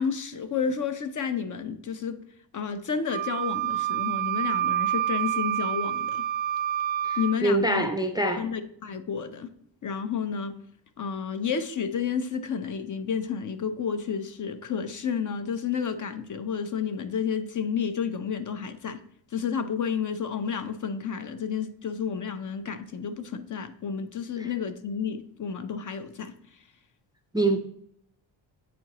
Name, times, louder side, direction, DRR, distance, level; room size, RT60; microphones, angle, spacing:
voice 1, 0.0-2.2 2.5-6.2 7.2-7.9 8.4-9.5 9.8-10.6 11.0-19.0 19.3-26.3, left 6 dB, 45° left, 0.6 m, -31 dB
Wind instrument woodwind instrument, 3.1-7.4, right 12 dB, 80° right, 0.5 m, -28 dB
voice 2, 7.0-8.4 24.4-24.5 27.3-27.6, right 2 dB, 10° right, 0.4 m, -25 dB
8.3 x 4.3 x 2.9 m
cardioid pair, 100°, 45 cm